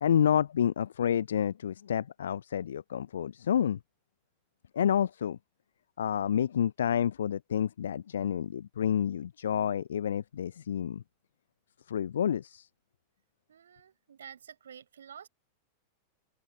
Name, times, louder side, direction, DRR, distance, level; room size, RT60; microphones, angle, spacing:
voice 1, 0.0-3.8 4.7-5.4 6.0-11.0 11.9-12.7, left 9 dB, 65° left, 0.4 m, -29 dB
voice 2, 13.5-15.3, right 8 dB, 65° right, 6.4 m, -49 dB
open air
figure-of-eight pair, 90°, 0 cm